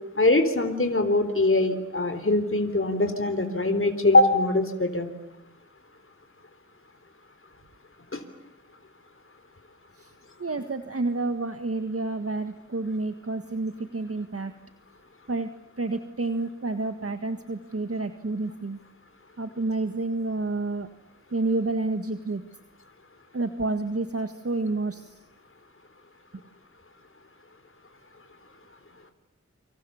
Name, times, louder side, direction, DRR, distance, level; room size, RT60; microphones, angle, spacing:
voice 1, 0.2-5.1 8.1-8.2, left 2 dB, 45° left, 7 dB, 3.8 m, -22 dB
voice 2, 10.4-14.5 15.3-15.5 15.8-18.8 19.4-20.9 21.3-22.4 23.3-25.2 26.3-26.4, right 3 dB, 50° right, 8 dB, 1.7 m, -29 dB
29.0 x 26.5 x 7.1 m, 0.95 s
wide cardioid pair, 50°, 29 cm